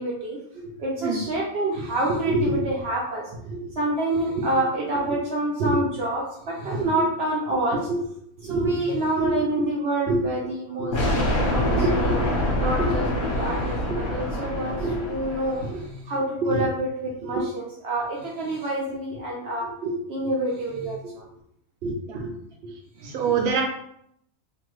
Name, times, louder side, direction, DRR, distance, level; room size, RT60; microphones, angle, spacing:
voice 1, 0.0-8.1 8.4-12.2 12.6-21.2 21.8-22.3 22.6-23.3, right 1 dB, 70° right, -3 dB, 0.6 m, -27 dB
sound 1, 10.9-15.8, left 1 dB, 50° left, 0.9 m, -25 dB
voice 2, 23.0-23.6, right 6 dB, 90° right, 1 dB, 1.1 m, -25 dB
2.8 x 2.2 x 3.0 m, 0.73 s
omnidirectional pair, 1.5 m